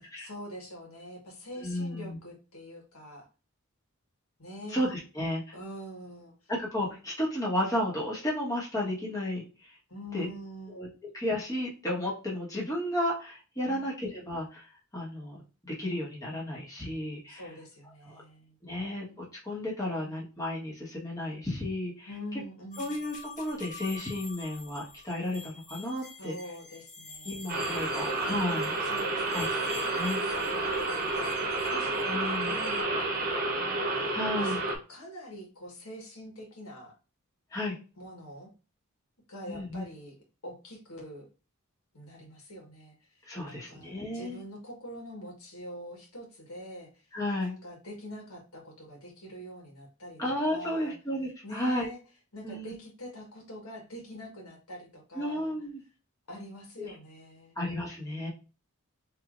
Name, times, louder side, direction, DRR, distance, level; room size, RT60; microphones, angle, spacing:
voice 1, 0.0-3.3 4.4-4.9 5.5-6.3 9.9-10.9 13.7-13.8 17.3-18.6 22.0-22.9 26.2-28.0 28.8-34.6 34.9-36.9 38.0-38.5 39.3-40.2 40.4-41.3 41.9-43.0 43.4-47.1 47.4-51.0 51.4-52.0 52.3-55.5 56.3-57.6, equal, 80° left, 0 dB, 1.6 m, -45 dB
voice 2, 1.6-2.2 4.7-5.5 6.5-9.8 10.1-10.3 10.7-10.9 11.1-15.4 15.6-17.4 18.6-22.4 22.8-26.3 27.2-28.7 29.3-29.5 29.9-30.2 32.1-32.5 34.1-34.6 37.5-37.8 39.5-39.8 43.2-44.4 47.1-47.5 50.2-51.9 52.4-52.7 55.2-55.8 56.8-56.9 57.5-58.3, left 1 dB, 15° left, -4 dB, 1.4 m, -33 dB
sound 1, 22.7-32.8, left 3 dB, 35° left, 1.3 m, -47 dB
sound 2, 27.5-34.8, right 2 dB, 40° right, 1.0 m, -30 dB
4.6 x 3.1 x 2.5 m, 0.33 s
head